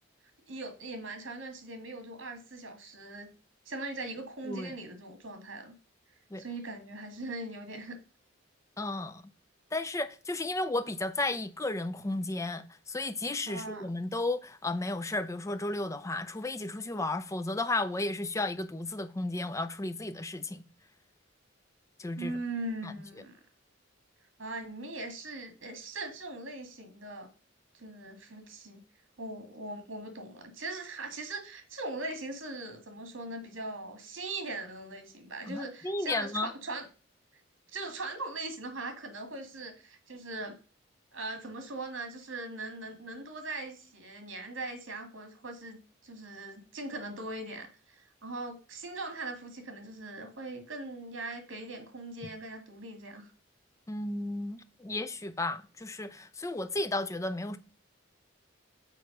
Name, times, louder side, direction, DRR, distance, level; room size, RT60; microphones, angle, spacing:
voice 1, 0.5-3.3 3.7-5.7 6.4-8.0 13.5-13.9 22.2-23.4 24.4-27.3 27.7-28.8 29.2-36.9 37.7-40.5 41.1-45.8 46.0-53.3, right 2 dB, 75° right, 1.8 m, -40 dB
voice 2, 8.8-9.2 9.7-20.6 22.0-22.3 22.8-22.9 35.5-36.5 53.9-57.6, left 2 dB, 15° left, 0.4 m, -33 dB
6.6 x 4.5 x 5.3 m
head